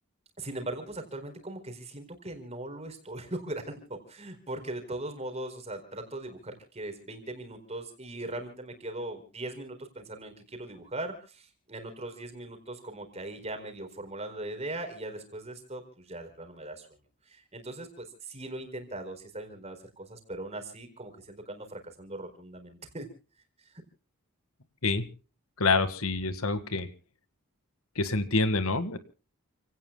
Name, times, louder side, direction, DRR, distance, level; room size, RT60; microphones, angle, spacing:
voice 1, 0.4-16.9 17.3-23.1, right 1 dB, 30° right, 7 dB, 4.3 m, -40 dB
voice 2, 25.6-26.9 27.9-29.0, left 3 dB, 70° left, 11 dB, 1.8 m, -27 dB
29.5 x 17.5 x 2.2 m, 0.36 s
head